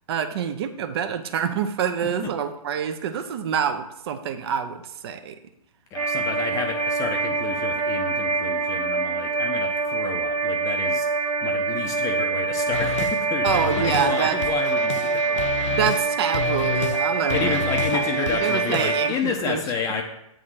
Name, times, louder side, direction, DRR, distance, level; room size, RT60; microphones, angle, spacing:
voice 1, 0.1-5.4 13.4-14.5 15.7-19.6, right 8 dB, 45° right, 8 dB, 0.7 m, -26 dB
voice 2, 5.9-15.4 15.8-16.0 17.1-20.0, left 5 dB, 15° left, 2 dB, 0.7 m, -30 dB
sound 1, 5.9-19.1, right 4 dB, 80° right, 1.1 m, -25 dB
sound 2, 12.7-13.2 13.4-16.1 16.3-17.0 17.3-19.2, left 9 dB, 55° left, 0.4 m, -31 dB
8.4 x 3.8 x 6.3 m, 0.80 s
figure-of-eight pair, 125°, 19 cm